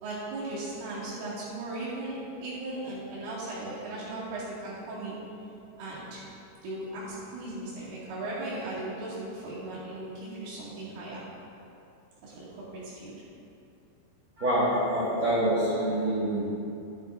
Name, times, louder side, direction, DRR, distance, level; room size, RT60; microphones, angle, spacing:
voice 1, 0.0-5.2 5.8-6.2 6.6-11.3 12.2-13.2, right 2 dB, 80° right, -8 dB, 4.8 m, -37 dB
voice 2, 14.4-16.4, right 1 dB, 50° right, -12 dB, 2.1 m, -26 dB
12.0 x 9.2 x 2.6 m, 2.7 s
omnidirectional pair, 5.7 m